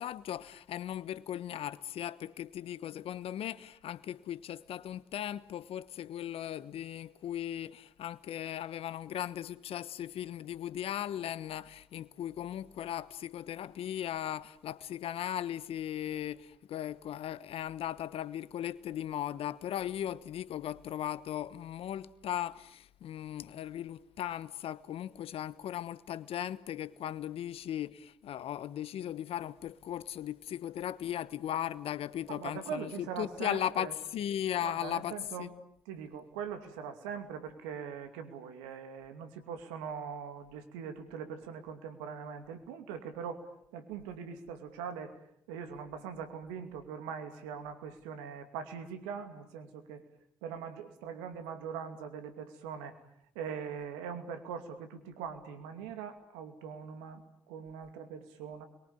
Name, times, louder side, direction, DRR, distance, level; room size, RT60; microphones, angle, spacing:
voice 1, 0.0-35.5, left 11 dB, 65° left, 1.1 m, -37 dB
voice 2, 32.3-33.9 34.6-35.5 35.9-43.4 43.7-50.0 50.4-53.0 53.3-58.6, right 7 dB, 85° right, 2.6 m, -42 dB
29.0 x 22.5 x 8.8 m
hypercardioid pair, 45°, 10 cm